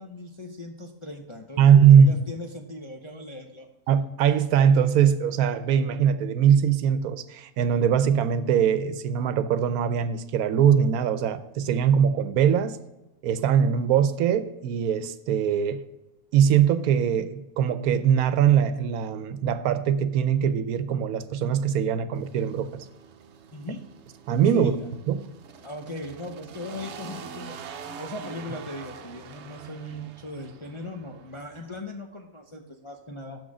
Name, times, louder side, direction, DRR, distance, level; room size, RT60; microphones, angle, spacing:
voice 1, 0.0-3.7 23.5-23.8 24.5-24.9 25.6-27.6 28.0-33.4, left 1 dB, 35° left, 1 dB, 0.4 m, -38 dB
voice 2, 1.6-2.2 3.9-12.8 13.2-15.8 16.3-22.9 24.3-24.8 25.1-25.2, right 8 dB, 85° right, 12 dB, 1.1 m, -21 dB
sound 1, 22.1-31.8, right 6 dB, 60° right, 0.8 m, -44 dB
6.8 x 6.3 x 4.8 m, 0.99 s
omnidirectional pair, 1.5 m